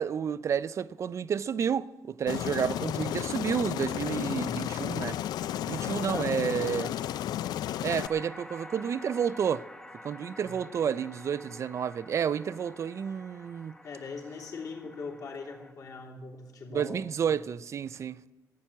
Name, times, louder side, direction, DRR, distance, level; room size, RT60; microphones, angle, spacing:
voice 1, 0.0-5.2 5.7-6.9 7.8-9.7 10.0-13.7 16.7-18.2, right 8 dB, 45° right, 0.3 m, -30 dB
Aircraft, 2.3-8.1, left 12 dB, 85° left, 0.3 m, -32 dB
voice 2, 6.0-6.9 10.4-10.7 13.8-17.5, left 4 dB, 60° left, 3.1 m, -41 dB
sound 1, 7.9-15.7, left 1 dB, 10° left, 0.8 m, -49 dB
13.0 x 8.6 x 9.1 m
cardioid pair, 125°, 7 cm